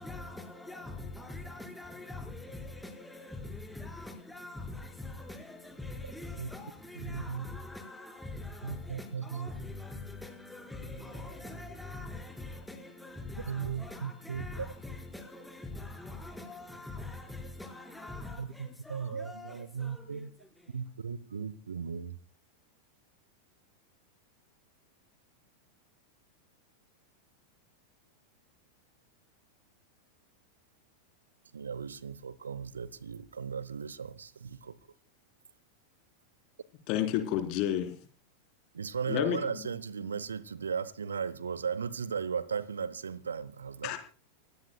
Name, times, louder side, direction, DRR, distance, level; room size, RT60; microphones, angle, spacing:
voice 1, 0.0-20.7, left 2 dB, 5° left, 4.9 m, -43 dB
voice 2, 7.0-7.5 8.6-9.5 13.5-14.7 18.4-20.3 20.7-22.1 31.6-34.8 38.7-44.0, right 6 dB, 70° right, 0.9 m, -36 dB
voice 3, 36.9-38.0 39.1-39.5 43.8-44.0, left 11 dB, 40° left, 3.9 m, -30 dB
30.0 x 16.5 x 2.3 m
figure-of-eight pair, 90°, 0 cm